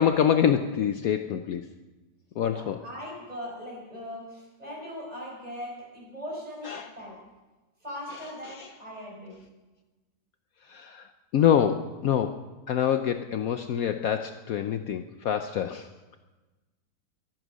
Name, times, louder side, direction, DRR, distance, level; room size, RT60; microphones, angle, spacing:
voice 1, 0.0-1.6 2.4-2.8 6.7-6.9 8.5-8.7 10.7-11.1 11.3-12.4 12.7-16.2, left 9 dB, 65° left, 8 dB, 1.0 m, -26 dB
voice 2, 2.5-7.2 7.8-9.4, equal, 20° right, -2 dB, 5.6 m, -40 dB
23.0 x 9.1 x 6.3 m, 1.2 s
omnidirectional pair, 1.8 m